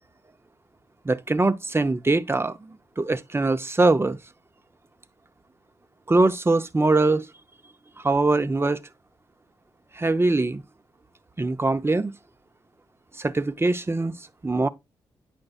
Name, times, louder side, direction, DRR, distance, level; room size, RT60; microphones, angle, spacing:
voice 1, 1.1-2.6 3.0-4.2 6.1-7.3 8.0-8.8 9.9-10.6 11.4-12.1 13.2-14.1 14.4-14.7, right 2 dB, 20° right, 0.6 m, -22 dB
8.6 x 5.2 x 2.4 m
hypercardioid pair, 40°, 11 cm